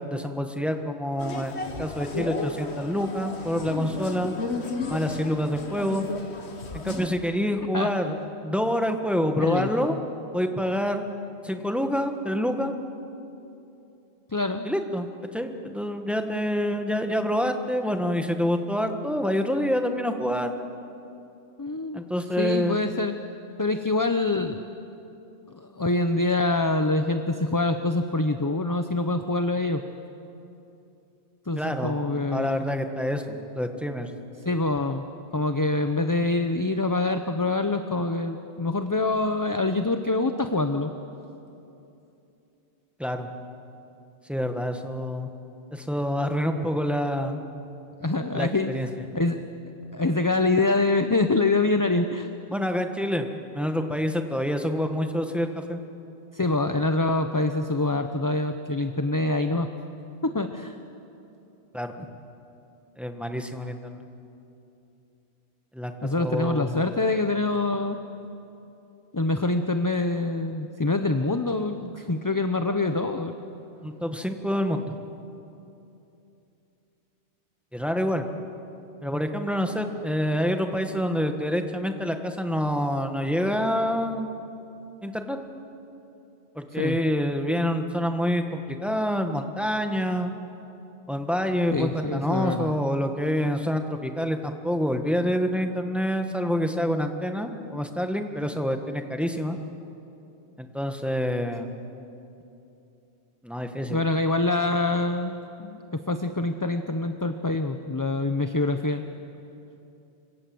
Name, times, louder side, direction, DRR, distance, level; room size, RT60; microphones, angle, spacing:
voice 1, 0.0-4.3 4.9-6.1 6.7-8.1 8.4-9.9 10.3-11.0 11.4-12.7 14.6-20.5 21.9-22.8 31.5-32.0 32.3-34.1 43.0-43.3 44.3-45.3 45.7-47.4 48.3-48.9 52.5-53.3 53.5-55.8 61.7-62.1 63.0-64.1 65.7-66.9 73.8-74.9 77.7-78.3 79.0-84.3 85.0-85.4 86.5-90.3 91.1-99.6 100.6-101.7 103.4-104.0, equal, ahead, 5 dB, 1.5 m, -27 dB
sound 1, 1.2-7.1, left 3 dB, 75° left, 1.8 m, -33 dB
voice 2, 9.4-10.0 14.3-14.6 21.6-22.0 22.4-23.2 23.6-24.6 25.5-29.8 31.5-32.7 34.4-35.0 35.3-40.9 48.0-48.7 49.1-49.4 49.9-52.3 56.3-59.7 60.2-60.8 66.0-68.0 69.1-73.3 86.7-87.0 91.7-92.7 103.9-105.3 105.6-109.0, left 2 dB, 20° left, 7 dB, 0.8 m, -25 dB
26.0 x 25.5 x 7.8 m, 2.8 s
omnidirectional pair, 1.1 m